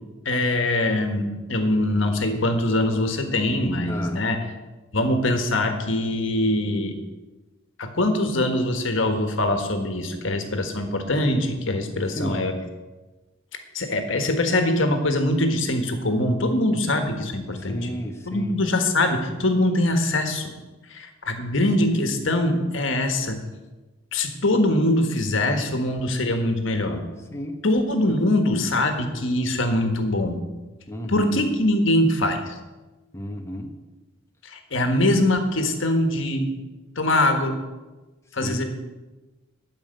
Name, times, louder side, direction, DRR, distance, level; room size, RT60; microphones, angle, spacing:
voice 1, 0.2-4.4 4.9-7.0 7.8-12.5 13.7-17.9 18.3-20.5 20.9-23.4 24.1-27.1 27.6-30.4 31.1-32.6 34.4-36.5 36.9-37.6 38.3-38.6, left 1 dB, 70° left, 6 dB, 1.5 m, -23 dB
voice 2, 3.9-4.2 12.1-12.4 17.6-18.6 27.3-27.6 28.1-28.3 30.9-31.4 33.1-33.8 38.3-38.6, equal, 15° left, 3 dB, 0.9 m, -32 dB
13.0 x 5.2 x 9.2 m, 1.2 s
head